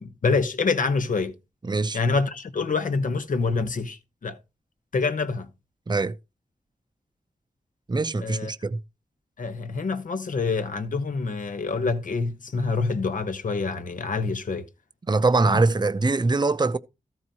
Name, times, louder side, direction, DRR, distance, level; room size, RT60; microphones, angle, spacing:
voice 1, 0.0-1.4 1.9-4.4 4.9-5.5 8.2-8.5 9.4-14.7 15.5-15.6, left 4 dB, 70° left, 1.1 m, -26 dB
voice 2, 1.6-2.0 5.9-6.1 7.9-8.8 15.1-16.8, right 3 dB, 30° right, 0.7 m, -23 dB
13.5 x 4.7 x 4.2 m
cardioid pair, 55°, 14 cm